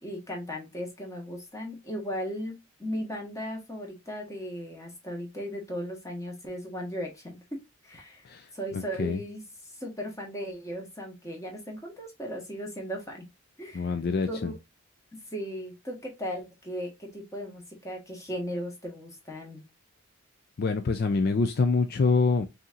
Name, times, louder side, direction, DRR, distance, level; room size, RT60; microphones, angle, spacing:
voice 1, 0.0-7.6 7.8-8.2 8.5-13.2 13.6-13.9 14.2-14.6 15.3-19.6, equal, 15° left, 1.3 m, -37 dB
voice 2, 8.2-9.2 13.7-14.5 20.6-22.5, left 4 dB, 45° left, 0.4 m, -26 dB
5.5 x 2.8 x 2.4 m
head